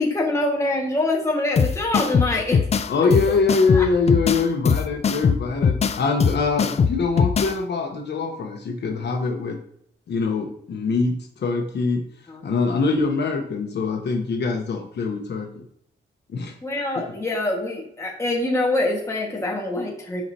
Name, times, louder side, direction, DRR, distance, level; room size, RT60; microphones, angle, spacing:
voice 1, 0.0-2.6 3.0-3.1 3.7-3.9 12.3-12.4 16.6-20.2, left 2 dB, 15° left, -1 dB, 1.6 m, -24 dB
sound 1, 1.6-7.6, left 6 dB, 35° left, 0.4 m, -21 dB
voice 2, 2.9-9.6 10.1-12.0 12.4-15.5 16.3-16.5, left 4 dB, 65° left, 3 dB, 1.0 m, -23 dB
9.2 x 5.4 x 2.8 m, 0.71 s
wide cardioid pair, 155°, 19 cm